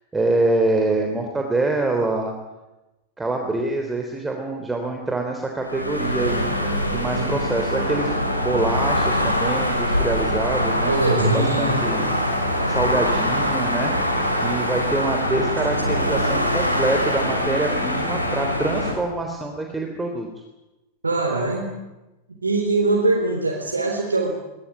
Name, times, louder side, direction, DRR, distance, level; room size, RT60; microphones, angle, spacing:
voice 1, 0.1-2.3 3.2-6.5 6.9-12.0 12.7-13.9 14.4-20.3, right 2 dB, 10° right, 3 dB, 3.7 m, -25 dB
sound 1, 5.6-18.9, equal, 90° left, 5.4 m, -23 dB
voice 2, 10.9-11.8 14.3-14.4 21.0-21.7 22.4-24.3, right 2 dB, 80° right, 0 dB, 4.0 m, -22 dB
24.0 x 21.0 x 9.0 m, 1.0 s
figure-of-eight pair, 90°, 0 cm